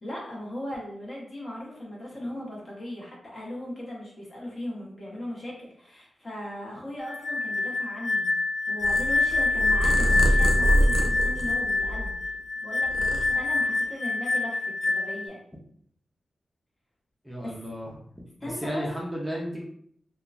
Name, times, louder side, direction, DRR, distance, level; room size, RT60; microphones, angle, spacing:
voice 1, 0.0-8.3 8.7-12.1 12.6-15.4 17.4-17.5 18.4-18.9, left 1 dB, 40° left, -4 dB, 0.9 m, -38 dB
sound 1, 7.1-15.3, left 3 dB, 60° left, 0.3 m, -26 dB
Purr, 8.8-12.4 12.7-13.8, right 1 dB, 65° right, 0.4 m, -25 dB
voice 2, 17.2-17.9 18.4-19.6, equal, 5° right, -3 dB, 0.5 m, -33 dB
2.9 x 2.2 x 2.4 m, 0.65 s
wide cardioid pair, 100°, 0 cm